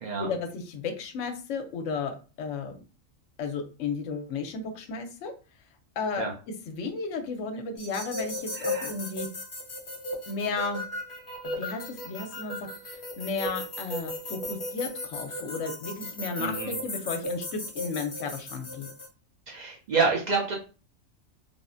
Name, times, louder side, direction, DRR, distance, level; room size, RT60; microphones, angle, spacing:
voice 1, 0.2-2.8 3.4-5.3 6.0-6.3 6.7-9.3 10.3-10.8 11.4-18.9, left 4 dB, 70° left, 6 dB, 0.9 m, -34 dB
sound 1, 7.8-19.1, left 2 dB, 35° left, 0.5 m, -36 dB
voice 2, 8.6-8.9 16.4-16.7 19.5-20.6, right 4 dB, 80° right, -2 dB, 0.4 m, -28 dB
3.4 x 2.0 x 2.5 m, 0.36 s
omnidirectional pair, 1.4 m